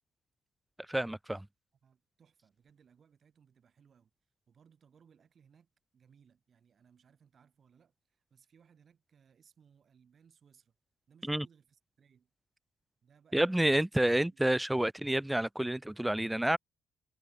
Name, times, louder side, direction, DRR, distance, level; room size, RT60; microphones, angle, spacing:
voice 1, 0.9-1.5 11.3-11.5 13.3-16.6, right 1 dB, 5° right, 0.4 m, -29 dB
voice 2, 1.8-4.1 4.5-10.7 11.1-12.3 13.0-13.8 14.3-14.5, right 7 dB, 50° right, 6.6 m, -65 dB
cardioid pair, 90°, 0 cm